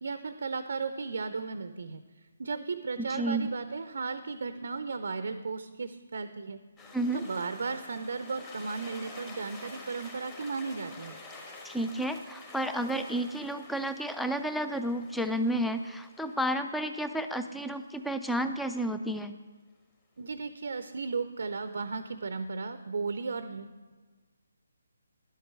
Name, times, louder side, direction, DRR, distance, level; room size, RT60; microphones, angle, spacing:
voice 1, 0.0-2.0 2.4-6.6 7.1-11.2 20.2-23.9, right 4 dB, 60° right, 10 dB, 0.5 m, -35 dB
voice 2, 3.0-3.5 6.9-7.2 11.6-19.4, right 1 dB, ahead, 8 dB, 0.4 m, -31 dB
sound 1, 6.8-18.2, left 2 dB, 20° left, 1.5 m, -49 dB
11.0 x 8.0 x 4.6 m, 1.4 s
figure-of-eight pair, 145°, 0 cm